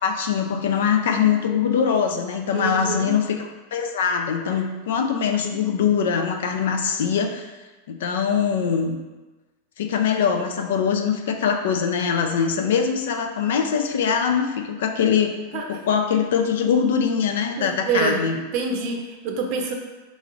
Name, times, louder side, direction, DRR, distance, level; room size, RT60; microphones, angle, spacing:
voice 1, 0.0-7.5 7.9-9.0 9.8-18.4, left 7 dB, 75° left, 5 dB, 0.4 m, -22 dB
voice 2, 2.5-3.2 15.5-15.8 17.6-18.2 18.5-19.7, right 4 dB, 55° right, 3 dB, 0.6 m, -26 dB
3.9 x 3.1 x 2.4 m, 1.2 s
hypercardioid pair, 105°, 0 cm